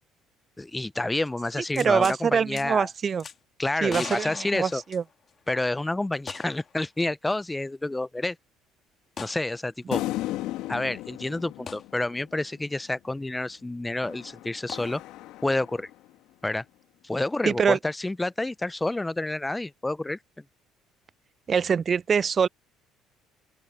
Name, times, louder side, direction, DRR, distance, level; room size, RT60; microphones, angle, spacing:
voice 1, 0.6-2.9 3.6-4.8 5.5-8.4 9.2-10.0 10.7-15.0 15.4-15.9 16.4-16.6 17.0-20.2, left 2 dB, 15° left, 0.6 m, -29 dB
sound 1, 1.7-2.2 2.6-2.7 3.2-3.4 3.9-5.4 6.3-6.7 7.0-7.1 9.2-9.4 11.7-11.8 14.7-14.8, left 6 dB, 45° left, 2.9 m, -39 dB
voice 2, 1.8-3.2 3.8-5.0 17.5-17.8 21.5-22.5, right 6 dB, 40° right, 0.4 m, -24 dB
sound 2, 9.9-12.6 14.0-16.1, left 16 dB, 70° left, 2.2 m, -35 dB
open air
hypercardioid pair, 60°, 0 cm